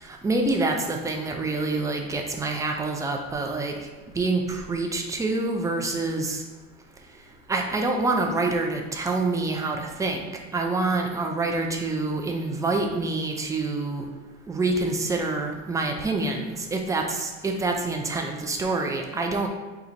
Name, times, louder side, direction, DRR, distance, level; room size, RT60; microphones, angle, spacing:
voice 1, 0.0-3.7 4.1-6.4 7.5-14.1 14.5-19.5, right 3 dB, 10° right, 2 dB, 0.3 m, -26 dB
4.0 x 2.4 x 4.5 m, 1.2 s
hypercardioid pair, 105°, 39 cm